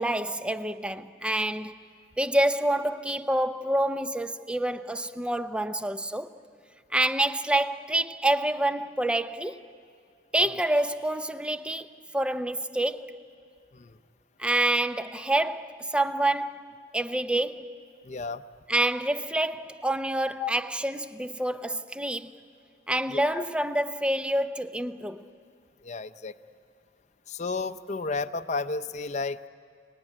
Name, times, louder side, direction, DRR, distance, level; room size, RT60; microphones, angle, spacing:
voice 1, 0.0-1.7 2.2-6.4 6.9-9.6 10.3-11.9 12.1-13.2 14.4-17.8 18.7-22.3 22.9-25.2, right 1 dB, 5° right, 0.6 m, -27 dB
voice 2, 18.0-18.4 20.4-20.5 23.1-23.4 25.8-26.3 27.3-29.5, left 4 dB, 40° left, 0.7 m, -32 dB
30.0 x 19.5 x 9.9 m
head